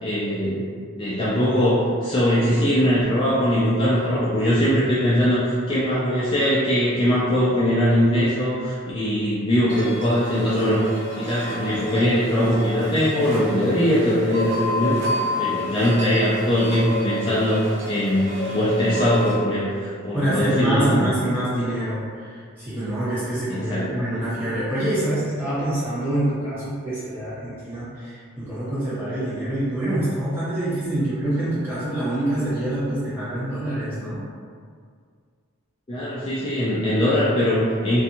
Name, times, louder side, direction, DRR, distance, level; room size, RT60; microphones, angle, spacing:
voice 1, 0.0-0.6 1.0-10.8 11.2-15.0 15.4-21.1 23.5-23.9 35.9-38.0, equal, 25° left, -9 dB, 0.3 m, -21 dB
sound 1, 9.7-19.4, left 1 dB, 55° right, 0.7 m, -30 dB
voice 2, 20.1-34.2, right 1 dB, 10° right, -13 dB, 1.1 m, -25 dB
2.5 x 2.3 x 2.8 m, 2.1 s
head